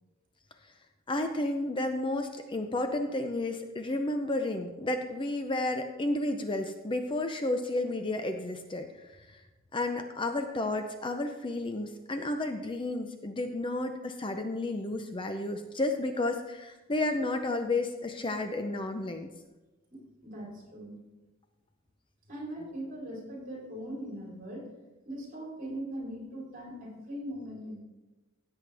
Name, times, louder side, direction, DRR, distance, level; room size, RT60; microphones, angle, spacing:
voice 1, 1.1-8.9 9.3-9.4 9.7-19.3, left 2 dB, 25° left, 6 dB, 0.6 m, -32 dB
voice 2, 19.9-21.0 22.3-24.7 25.1-27.8, right 1 dB, 40° right, -2 dB, 3.8 m, -40 dB
16.0 x 8.1 x 3.4 m, 1.1 s
head